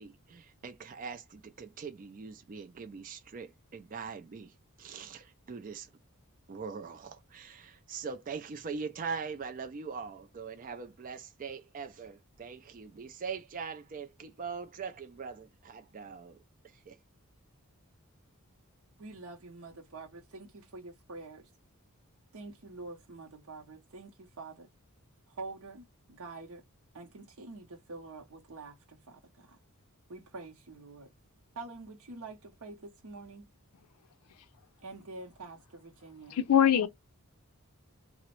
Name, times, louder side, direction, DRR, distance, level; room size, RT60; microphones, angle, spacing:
voice 1, 0.0-5.9 6.5-16.4 16.7-17.0, right 5 dB, 35° right, 0.4 m, -42 dB
voice 2, 19.0-21.5 22.3-24.7 25.3-26.6 26.9-29.6 30.1-31.1 31.5-33.5 34.8-36.4, right 3 dB, 65° right, 0.7 m, -46 dB
voice 3, 36.3-36.9, left 9 dB, 80° left, 0.5 m, -22 dB
3.7 x 2.0 x 3.0 m
head